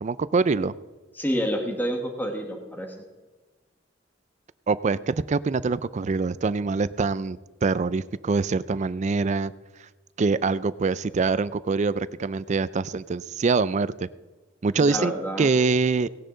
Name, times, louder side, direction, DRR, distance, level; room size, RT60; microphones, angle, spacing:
voice 1, 0.0-0.7 4.7-9.5 10.2-13.9 14.6-15.1 15.4-16.1, right 4 dB, 40° right, 17 dB, 0.4 m, -24 dB
voice 2, 1.2-2.9 14.8-15.5, equal, 10° left, 3 dB, 1.5 m, -28 dB
18.0 x 10.0 x 3.9 m, 1.3 s
head